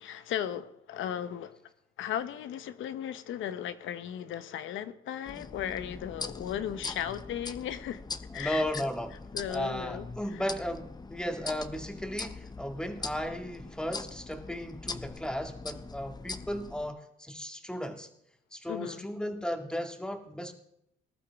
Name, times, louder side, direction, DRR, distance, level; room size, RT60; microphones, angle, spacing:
voice 1, 0.0-1.6 2.0-8.0 8.3-8.8 9.3-10.4 18.7-19.1, left 10 dB, 80° left, 12 dB, 1.0 m, -36 dB
sound 1, 5.3-16.9, left 3 dB, 20° left, 0.7 m, -42 dB
voice 2, 8.3-9.1 9.5-18.1 18.5-20.5, equal, 5° left, 4 dB, 1.9 m, -35 dB
19.5 x 12.0 x 3.6 m, 0.76 s
cardioid pair, 90°, 20 cm